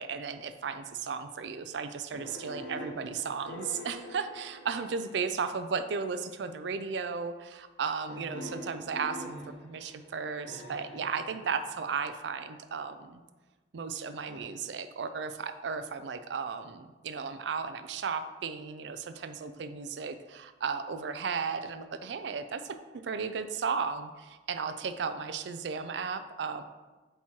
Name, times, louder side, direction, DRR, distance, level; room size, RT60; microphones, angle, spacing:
voice 1, 0.0-13.2 13.7-26.7, right 5 dB, 75° right, 10 dB, 0.4 m, -35 dB
sound 1, 2.1-5.5 6.2-6.7 8.1-12.2 14.3-14.4, equal, 80° left, 0.9 m, -45 dB
8.1 x 3.0 x 4.4 m, 1.2 s
head